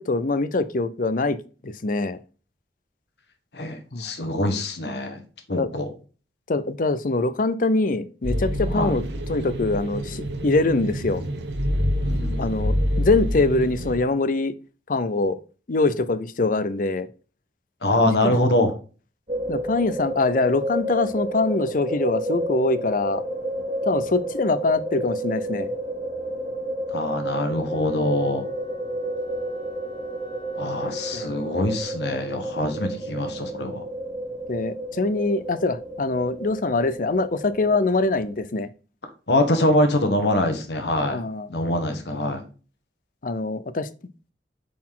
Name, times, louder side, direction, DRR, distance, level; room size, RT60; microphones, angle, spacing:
voice 1, 0.0-1.4 1.6-2.2 3.9-4.0 5.6-5.7 6.5-9.0 9.3-11.2 12.4-14.5 14.9-15.4 15.7-17.1 18.2-18.3 19.5-23.2 23.8-25.7 31.1-31.3 34.5-38.7 41.1-41.5 43.2-43.9, left 3 dB, 50° left, 0.6 m, -23 dB
voice 2, 3.5-5.2 5.5-5.9 8.7-8.9 12.0-12.4 17.8-18.7 26.9-28.5 30.5-33.8 39.3-41.2 41.5-42.4, left 1 dB, 70° left, 1.4 m, -24 dB
sound 1, 8.2-14.0, equal, 75° right, 1.2 m, -26 dB
sound 2, 19.3-38.4, right 1 dB, 40° right, 2.7 m, -31 dB
Wind instrument woodwind instrument, 27.6-32.1, right 2 dB, 25° left, 1.6 m, -46 dB
8.5 x 4.2 x 3.8 m
head